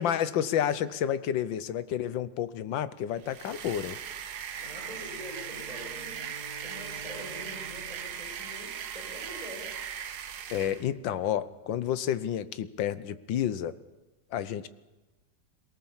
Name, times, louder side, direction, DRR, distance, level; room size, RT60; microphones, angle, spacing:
voice 1, 0.0-4.0 10.5-13.7 14.3-14.7, left 10 dB, 85° left, 14 dB, 1.6 m, -30 dB
sound 1, 3.2-10.9, right 8 dB, 65° right, 1.5 m, -39 dB
Bowed string instrument, 4.5-9.2, right 1 dB, 60° left, 5.4 m, -50 dB
voice 2, 4.6-6.2 6.6-9.7, equal, 20° right, -3 dB, 5.8 m, -44 dB
23.0 x 18.0 x 7.3 m, 1.1 s
omnidirectional pair, 2.0 m